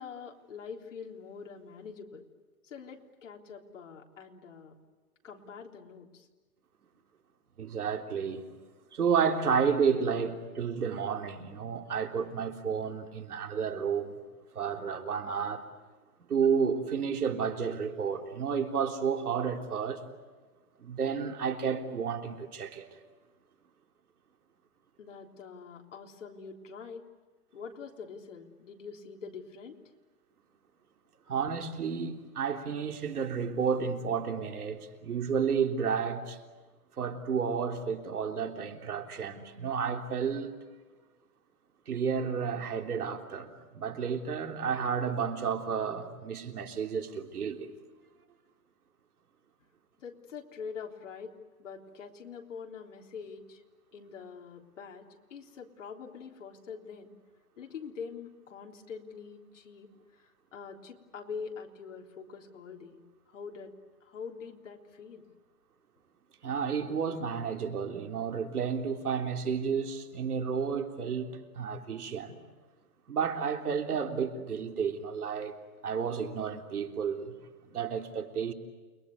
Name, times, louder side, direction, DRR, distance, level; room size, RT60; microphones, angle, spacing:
voice 1, 0.0-2.2 2.6-4.8 5.2-6.3 25.0-27.1 27.5-29.8 50.0-51.3 51.6-53.6 53.9-57.1 57.6-63.0 63.3-63.7 64.0-65.3, left 6 dB, 55° left, 3.6 m, -44 dB
voice 2, 7.6-8.4 8.9-14.2 14.5-15.7 16.3-20.0 20.8-22.9 31.3-36.4 37.0-40.5 41.9-47.7 66.4-72.4 73.1-77.3 77.7-78.5, right 6 dB, 90° right, 3.5 m, -31 dB
29.5 x 23.0 x 8.3 m
hypercardioid pair, 175°, 43 cm